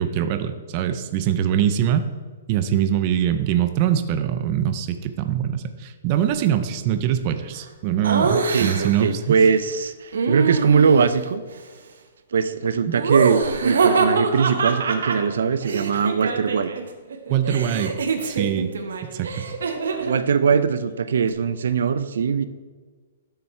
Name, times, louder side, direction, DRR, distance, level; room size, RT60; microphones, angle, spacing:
voice 1, 0.0-2.0 2.5-9.3 12.9-13.0 17.3-17.9 18.2-18.7 19.1-19.5, right 10 dB, 25° right, 8 dB, 0.5 m, -23 dB
Laughter, 8.0-9.1 10.1-11.1 12.9-16.8 17.1-20.2, right 4 dB, 85° right, 1.2 m, -24 dB
voice 2, 8.3-11.4 12.3-16.7 19.9-22.5, right 6 dB, 70° right, 12 dB, 0.6 m, -21 dB
12.0 x 6.8 x 4.4 m, 1.4 s
hypercardioid pair, 175°, 0 cm